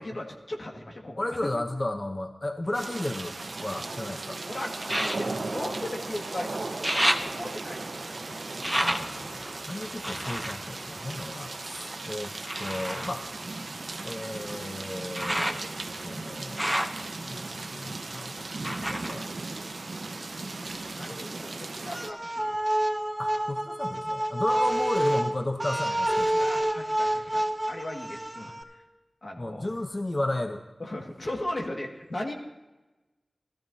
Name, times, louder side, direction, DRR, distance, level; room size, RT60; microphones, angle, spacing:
voice 1, 0.0-1.4 4.4-8.4 20.9-22.6 24.5-24.6 26.4-28.5 29.2-29.7 30.8-32.3, left 1 dB, 65° left, 0 dB, 1.8 m, -37 dB
voice 2, 1.2-4.4 8.8-12.3 12.6-13.3 14.0-15.7 16.0-16.7 17.3-19.3 21.1-21.2 23.2-26.5 29.4-30.6, left 1 dB, 40° left, 5 dB, 0.7 m, -34 dB
sips sorbos de mate o tereré, 2.7-4.0 4.8-6.3 6.6-11.8 12.4-20.3 20.6-21.4 21.9-22.0, equal, 5° right, 1.0 m, -33 dB
sound 1, 2.7-22.1, right 3 dB, 80° right, 0.6 m, -37 dB
sound 2, 21.9-28.6, right 1 dB, 20° right, 2.1 m, -28 dB
17.5 x 14.0 x 2.7 m, 1.1 s
wide cardioid pair, 55°, 0 cm